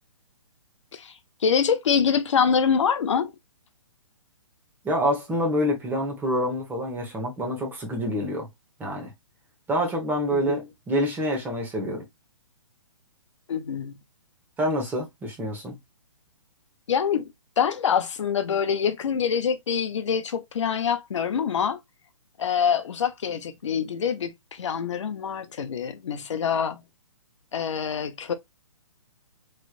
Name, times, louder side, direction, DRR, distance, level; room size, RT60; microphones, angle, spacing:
voice 1, 1.4-3.3 10.3-10.6 13.5-13.9 16.9-17.3 17.6-21.8 22.4-26.8 27.5-28.3, left 7 dB, 65° left, 0.8 m, -25 dB
voice 2, 4.8-8.5 8.8-9.1 9.7-12.0 14.6-15.8, equal, 10° right, 1.1 m, -27 dB
3.3 x 3.0 x 2.4 m
hypercardioid pair, 140°, 16 cm